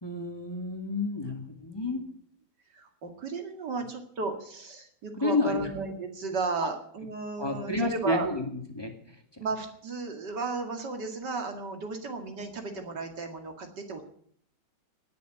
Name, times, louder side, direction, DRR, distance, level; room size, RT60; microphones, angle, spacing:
voice 1, 0.0-2.0 5.2-5.7 7.4-8.4 8.7-9.2, left 2 dB, 15° left, 3 dB, 2.0 m, -30 dB
voice 2, 1.7-2.0 2.7-8.3 9.4-14.0, right 4 dB, 65° right, 5 dB, 2.6 m, -34 dB
19.0 x 7.0 x 9.1 m, 0.63 s
omnidirectional pair, 2.0 m